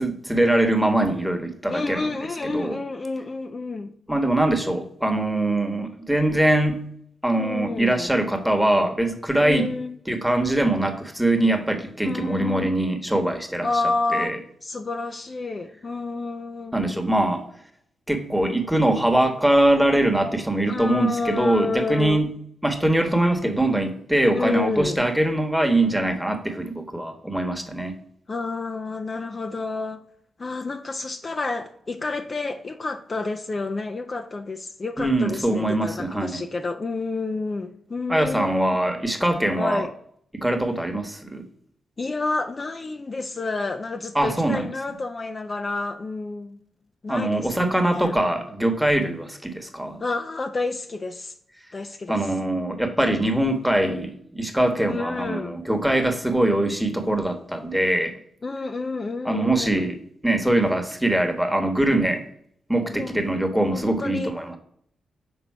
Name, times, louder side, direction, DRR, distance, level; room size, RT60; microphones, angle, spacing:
voice 1, 0.0-2.1 2.4-2.8 4.1-6.8 7.2-9.7 10.1-13.7 14.1-14.4 16.7-17.4 18.1-22.3 22.6-27.9 35.0-36.4 38.1-39.9 40.3-41.4 44.1-44.6 47.1-50.0 52.1-58.1 59.2-60.0 60.2-62.2 62.7-64.6, right 1 dB, 5° right, 5 dB, 1.3 m, -22 dB
voice 2, 1.7-3.9 7.3-8.1 9.4-9.9 12.0-12.8 13.6-14.4 14.6-17.0 20.7-22.2 24.3-25.0 28.3-30.0 30.4-38.8 39.6-39.9 42.0-46.6 47.0-48.1 50.0-51.3 51.7-52.2 54.9-55.6 58.4-59.9 62.9-63.3 63.7-64.3, left 3 dB, 40° left, 5 dB, 0.5 m, -29 dB
5.3 x 3.9 x 4.6 m, 0.67 s
supercardioid pair, 45°, 0 cm